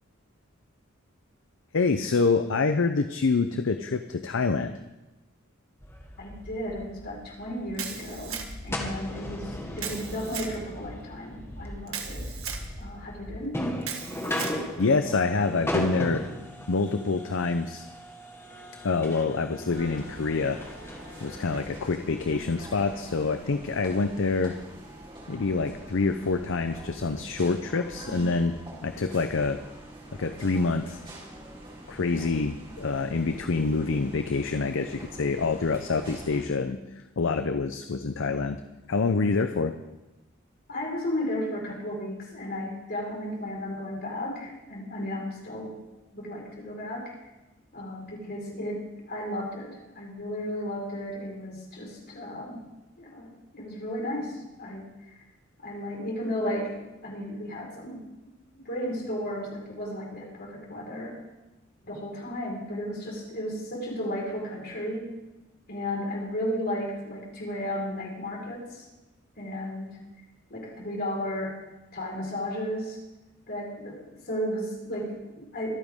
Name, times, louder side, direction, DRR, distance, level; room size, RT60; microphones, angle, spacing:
voice 1, 1.7-4.7 14.8-16.2 16.7-17.8 18.8-20.6 21.2-24.6 25.3-28.5 28.8-29.6 30.2-31.0 31.9-36.8 37.2-38.6 38.9-39.7, left 4 dB, 65° left, 8 dB, 0.6 m, -26 dB
sound 1, 5.8-21.6, left 1 dB, 10° left, 1.6 m, -37 dB
voice 2, 6.2-12.4 12.8-13.6 40.7-45.8 46.1-47.1 47.7-52.6 53.0-54.9 55.6-58.1 58.5-61.2 61.8-65.1 65.7-68.9 69.4-70.0 70.5-71.6 71.9-73.0 73.5-75.8, equal, 50° left, -2 dB, 4.7 m, -34 dB
Camera, 7.8-8.7 9.8-10.5 11.9-12.7 13.8-14.6, right 7 dB, 90° right, 1.6 m, -36 dB
sound 2, 19.7-36.4, right 1 dB, 25° right, 4.1 m, -45 dB
24.5 x 9.1 x 3.7 m, 1.0 s
head